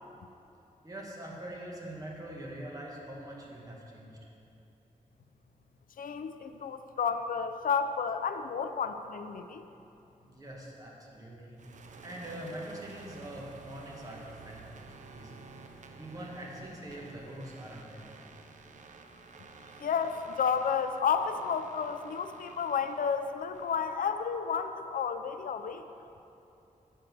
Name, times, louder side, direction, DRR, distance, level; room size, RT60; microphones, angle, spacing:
voice 1, 0.8-4.2 10.2-15.4 16.0-18.3, right 1 dB, 25° right, -3 dB, 1.2 m, -44 dB
voice 2, 6.0-9.7 19.8-25.9, left 6 dB, 85° left, 9 dB, 0.4 m, -31 dB
sound 1, 11.6-24.4, right 4 dB, 65° right, 0.5 m, -52 dB
7.5 x 4.5 x 6.4 m, 2.9 s
wide cardioid pair, 155°, 14 cm